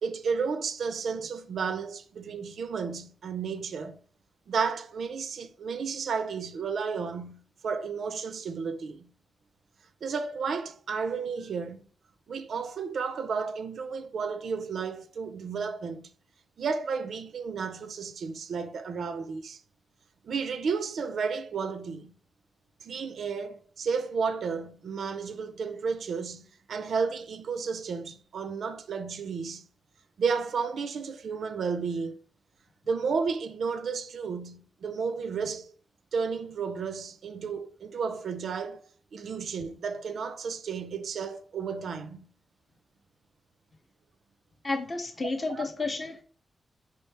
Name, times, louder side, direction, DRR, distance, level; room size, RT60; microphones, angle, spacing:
voice 1, 0.0-4.0 4.5-9.1 10.0-11.8 12.3-16.1 16.6-19.6 20.2-22.1 22.8-29.6 30.2-32.2 32.9-35.7 36.1-38.8 39.1-42.3 45.3-45.6, right 5 dB, 65° right, 0.4 m, -32 dB
voice 2, 44.6-46.2, left 3 dB, 25° left, 0.5 m, -31 dB
4.4 x 3.1 x 3.3 m
wide cardioid pair, 170°, 0 cm